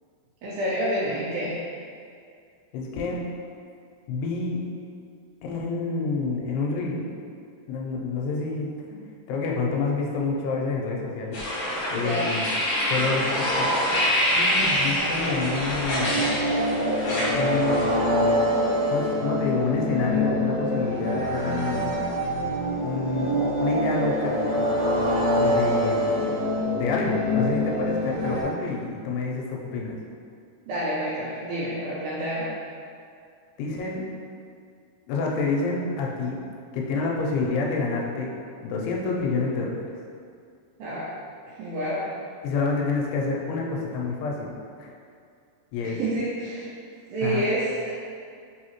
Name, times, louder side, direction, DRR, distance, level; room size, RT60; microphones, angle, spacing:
voice 1, 0.4-1.6 11.9-12.4 30.7-32.5 40.8-41.1 41.6-42.1 45.8-46.7 47.1-47.9, right 1 dB, 85° right, -8 dB, 2.0 m, -28 dB
voice 2, 2.7-3.2 4.1-4.6 5.4-7.0 7.7-8.7 9.3-11.4 11.9-12.5 12.9-13.8 14.3-16.4 17.3-17.9 18.9-21.9 22.8-23.3 23.6-24.4 25.4-26.3 26.7-30.0 33.6-34.1 35.1-36.4 36.7-38.3 38.6-39.9 42.4-44.9 45.7-46.0 47.2-47.5, left 4 dB, 90° left, -1 dB, 2.7 m, -28 dB
sound 1, 11.3-17.9, equal, 70° left, 2.6 m, -26 dB
sound 2, 12.9-28.4, equal, 50° left, 1.7 m, -25 dB
5.8 x 2.8 x 2.9 m, 2.3 s
omnidirectional pair, 4.6 m